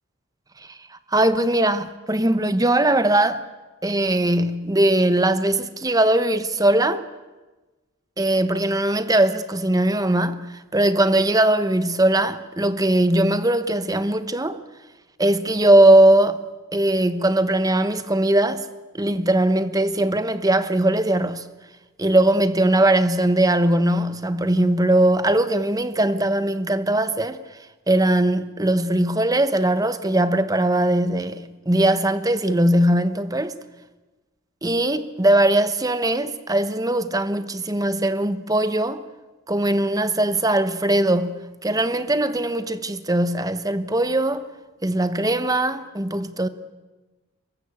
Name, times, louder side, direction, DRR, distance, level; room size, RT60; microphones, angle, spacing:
voice 1, 1.1-3.4 3.8-7.0 8.2-10.4 10.7-14.6 15.2-16.4 16.7-18.7 18.9-21.4 22.0-27.4 27.9-33.5 34.6-39.0 39.5-44.4 44.8-46.5, right 1 dB, 15° right, 1.0 m, -20 dB
24.0 x 21.5 x 8.4 m
head